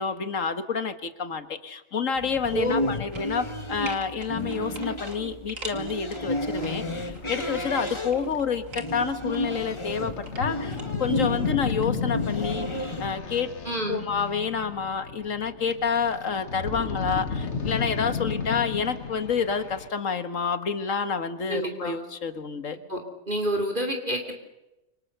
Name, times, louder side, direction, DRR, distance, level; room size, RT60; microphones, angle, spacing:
voice 1, 0.0-10.1 10.4-13.5 13.9-22.8, left 6 dB, 75° left, 9 dB, 1.9 m, -29 dB
sound 1, 2.2-13.1, left 1 dB, 20° left, 1.7 m, -33 dB
voice 2, 2.5-2.9 13.7-14.0 21.5-22.0 22.9-23.0 23.3-24.3, equal, 40° right, 3 dB, 3.4 m, -28 dB
sound 2, 3.1-3.6 3.9-6.7 7.1-8.9 9.3-10.8 11.1-11.2, right 3 dB, 80° right, 3.1 m, -43 dB
sound 3, 6.6-19.9, left 5 dB, 60° left, 1.9 m, -33 dB
28.0 x 25.5 x 6.8 m, 0.96 s
omnidirectional pair, 1.4 m